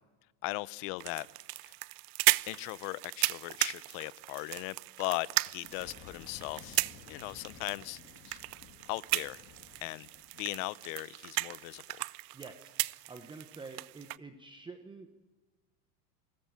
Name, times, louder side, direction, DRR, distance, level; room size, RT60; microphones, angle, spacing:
voice 1, 0.4-1.3 1.6-1.7 2.5-8.0 8.3-8.4 8.9-9.4 9.8-10.1 10.3-11.8, left 22 dB, 55° left, 0.8 m, -38 dB
sound 1, 1.0-14.2, right 23 dB, 65° right, 0.6 m, -36 dB
sound 2, 5.6-10.6, left 6 dB, 30° left, 2.2 m, -54 dB
voice 2, 12.3-15.1, right 4 dB, 10° right, 0.9 m, -48 dB
27.5 x 14.0 x 8.9 m
supercardioid pair, 150°, 48 cm